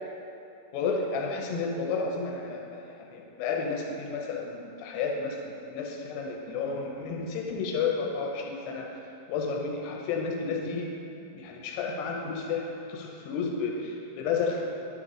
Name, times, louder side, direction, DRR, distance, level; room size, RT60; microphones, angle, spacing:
voice 1, 0.7-8.9 9.3-10.9 11.3-14.6, left 4 dB, 90° left, 0 dB, 2.4 m, -32 dB
9.8 x 3.7 x 5.0 m, 2.8 s
omnidirectional pair, 4.1 m